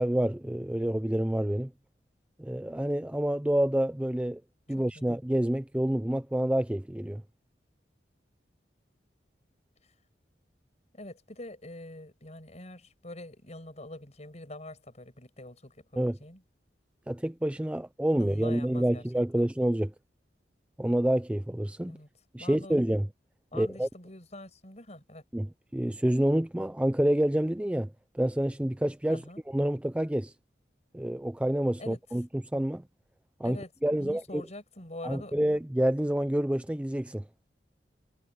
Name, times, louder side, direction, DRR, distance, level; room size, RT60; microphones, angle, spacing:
voice 1, 0.0-1.7 2.4-4.4 4.7-7.2 16.0-16.2 17.1-19.9 20.8-21.9 22.3-23.1 23.5-23.9 25.3-25.5 25.7-30.3 30.9-32.3 32.5-32.8 33.4-34.4 35.0-37.2, right 1 dB, 5° right, 0.4 m, -28 dB
voice 2, 4.7-5.1 10.9-16.4 18.2-19.0 19.4-19.5 21.8-22.1 22.4-22.8 23.5-25.2 29.1-29.4 31.8-32.0 33.4-35.3, left 1 dB, 40° left, 7.0 m, -45 dB
head